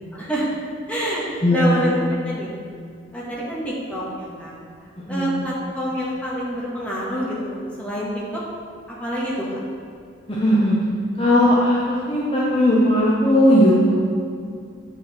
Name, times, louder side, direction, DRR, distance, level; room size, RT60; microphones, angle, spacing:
voice 1, 0.1-0.5 0.9-2.0 2.2-2.5 3.1-4.5 5.1-8.4 9.0-9.5, equal, 5° left, -6 dB, 1.7 m, -27 dB
voice 2, 1.4-1.8 5.1-5.3 10.3-10.8 11.2-13.7, left 1 dB, 30° left, -6 dB, 1.0 m, -17 dB
8.5 x 6.6 x 4.4 m, 2.3 s
head